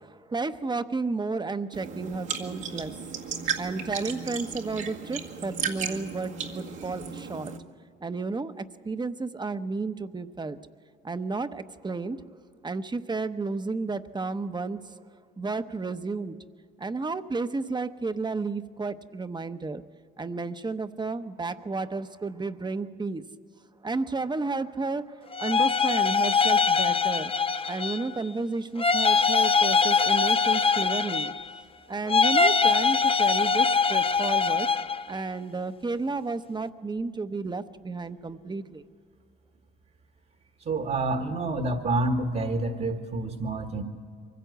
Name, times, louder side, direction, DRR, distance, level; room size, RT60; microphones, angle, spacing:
voice 1, 0.0-2.9 3.6-7.5 8.0-10.6 11.0-12.2 12.6-14.9 15.4-16.4 16.8-19.8 20.2-23.2 23.8-27.3 27.7-31.3 31.9-34.7 35.1-38.8, right 3 dB, 20° right, 11 dB, 0.9 m, -32 dB
sound 1, 1.7-7.6, right 6 dB, 80° right, 2.0 m, -35 dB
sound 2, 25.3-28.2 28.8-31.6 32.1-35.0, left 5 dB, 30° left, 0.5 m, -23 dB
voice 2, 40.6-43.8, right 2 dB, 50° right, 5 dB, 1.5 m, -28 dB
24.0 x 16.0 x 8.0 m, 2.2 s
cardioid pair, 90°, 20 cm